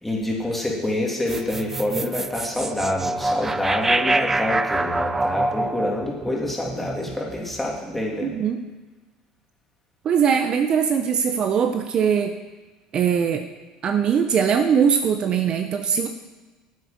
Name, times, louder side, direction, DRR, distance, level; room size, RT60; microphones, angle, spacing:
voice 1, 0.0-8.3, left 1 dB, 10° left, -2 dB, 2.7 m, -27 dB
sound 1, 1.3-7.6, right 2 dB, 15° right, 0.3 m, -26 dB
voice 2, 8.2-8.6 10.0-12.3 12.9-13.5 13.8-16.1, right 7 dB, 45° right, 7 dB, 0.7 m, -21 dB
9.6 x 7.9 x 5.2 m, 1.3 s
supercardioid pair, 95°, 2 cm